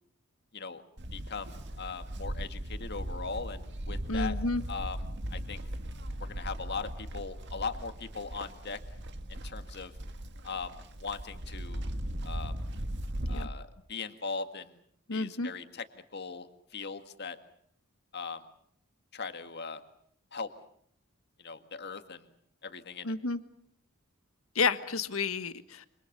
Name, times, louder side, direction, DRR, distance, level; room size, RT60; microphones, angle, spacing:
Livestock farm animals working animals, 1.0-13.4, right 1 dB, 55° right, 2.0 m, -38 dB
voice 1, 1.1-4.4 4.7-5.0 5.3-5.6 6.2-8.8 9.3-9.9 10.4-11.8 12.2-12.6 13.3-14.8 15.1-15.8 16.1-16.5 16.7-17.4 18.1-18.4 19.1-19.8 20.3-20.5 21.4-22.3 22.6-23.1, left 4 dB, 55° left, 8 dB, 2.0 m, -39 dB
voice 2, 4.1-4.6 13.3-13.5 15.1-15.5 23.0-23.4 24.5-25.8, left 4 dB, 85° left, 11 dB, 1.6 m, -30 dB
27.5 x 26.0 x 6.8 m, 0.67 s
head